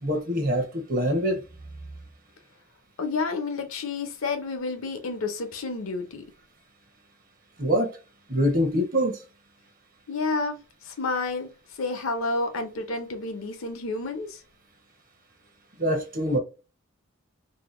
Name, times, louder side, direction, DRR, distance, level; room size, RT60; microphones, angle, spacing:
voice 1, 0.0-1.4 7.6-7.9 8.3-9.2 15.8-16.4, equal, 40° right, 0.7 m, -24 dB
voice 2, 3.0-6.2 10.1-10.6 10.8-11.5 11.8-14.4, left 3 dB, 75° left, 0.7 m, -30 dB
2.7 x 2.1 x 3.0 m
head